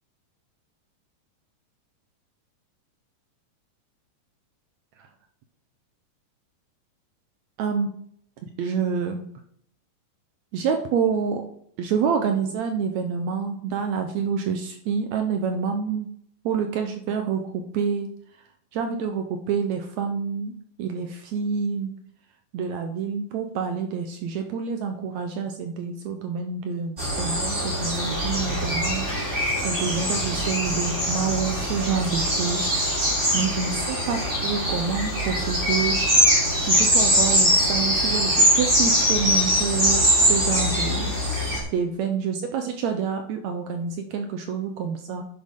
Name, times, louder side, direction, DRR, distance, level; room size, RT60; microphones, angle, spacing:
voice 1, 7.6-7.9 8.6-9.2 10.5-11.4 11.8-16.1 16.4-18.1 18.7-21.9 22.5-29.1 29.6-32.7 33.0-36.0 36.6-41.2 41.7-45.2, right 6 dB, 70° right, 5 dB, 1.8 m, -27 dB
sound 1, 27.0-41.6, equal, 20° right, 3.7 m, -22 dB
11.0 x 8.6 x 3.7 m, 0.68 s
omnidirectional pair, 3.9 m